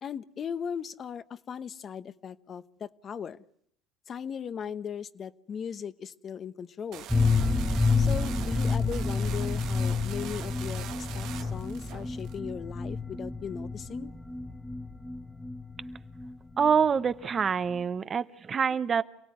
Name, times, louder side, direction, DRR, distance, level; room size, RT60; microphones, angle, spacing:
voice 1, 0.0-3.4 4.1-7.1 8.0-14.1, left 7 dB, 40° left, 13 dB, 1.0 m, -38 dB
sound 1, 6.9-12.4, right 12 dB, 65° right, 1.2 m, -43 dB
sound 2, 7.1-16.7 17.0-17.1 17.4-17.5, left 4 dB, 5° left, 1.2 m, -29 dB
voice 2, 16.6-19.0, right 6 dB, 35° right, 13 dB, 1.0 m, -26 dB
27.5 x 17.0 x 9.6 m, 0.72 s
supercardioid pair, 95°, 0 cm